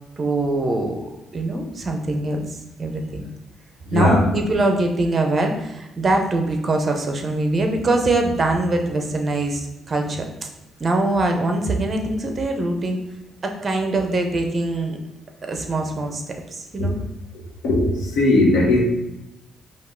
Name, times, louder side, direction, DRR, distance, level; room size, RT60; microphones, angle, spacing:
voice 1, 0.2-1.0 1.3-2.4 2.8-3.2 3.9-9.6 9.9-10.2 10.8-13.0 13.4-15.0 15.5-16.2 16.7-17.0, right 2 dB, 35° right, 3 dB, 0.7 m, -22 dB
voice 2, 3.9-4.2 16.8-16.9 17.6-18.8, left 2 dB, 90° left, -3 dB, 1.1 m, -18 dB
5.2 x 2.4 x 3.8 m, 0.89 s
cardioid pair, 100°, 0 cm